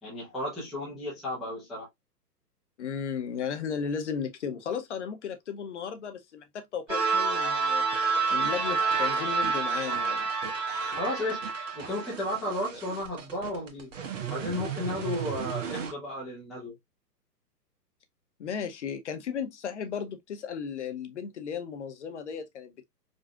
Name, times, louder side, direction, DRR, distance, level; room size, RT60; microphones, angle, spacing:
voice 1, 0.0-1.9 11.0-11.5 11.7-13.9 14.2-16.8, left 1 dB, ahead, 0.5 m, -33 dB
voice 2, 2.8-10.3 18.4-22.8, left 7 dB, 45° left, 0.8 m, -35 dB
sound 1, 6.9-12.1, right 4 dB, 30° right, 1.6 m, -28 dB
sound 2, 7.9-15.9, right 7 dB, 50° right, 1.1 m, -39 dB
5.1 x 2.4 x 2.3 m
figure-of-eight pair, 120°, 48 cm